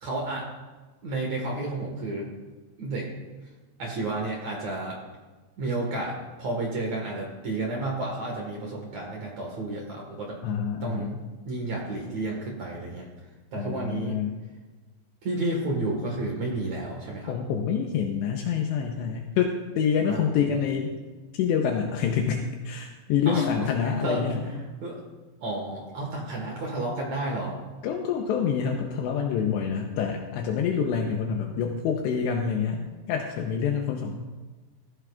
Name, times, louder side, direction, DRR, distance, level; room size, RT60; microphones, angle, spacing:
voice 1, 0.0-0.5 1.0-2.3 2.8-3.1 3.8-5.0 5.6-10.4 10.8-11.1 11.5-13.0 13.5-14.2 15.2-17.3 20.1-20.3 23.3-23.7 24.0-24.4 24.8-25.0 25.4-27.6, right 2 dB, 60° right, -1 dB, 1.9 m, -31 dB
voice 2, 10.4-11.2 13.6-14.4 17.3-20.9 21.3-24.5 27.8-34.2, left 7 dB, 80° left, 1 dB, 2.8 m, -27 dB
18.0 x 14.5 x 2.4 m, 1.3 s
omnidirectional pair, 5.5 m